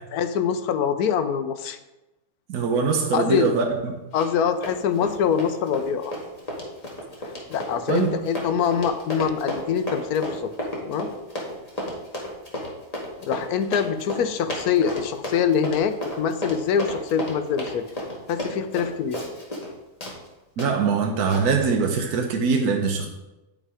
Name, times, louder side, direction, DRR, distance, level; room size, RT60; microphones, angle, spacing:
voice 1, 0.1-1.8 3.1-3.5 4.1-6.1 7.5-10.5 10.8-11.1 13.2-17.8 18.3-19.2, left 7 dB, 75° left, 10 dB, 1.2 m, -24 dB
voice 2, 2.5-3.9 7.9-8.1 20.6-23.1, right 5 dB, 75° right, 2 dB, 1.4 m, -22 dB
Run, 4.1-4.4 4.6-19.7 20.0-20.2 20.6-20.7 21.3-21.4, left 1 dB, 25° left, 1.8 m, -32 dB
9.8 x 5.4 x 4.9 m, 1.0 s
omnidirectional pair, 1.7 m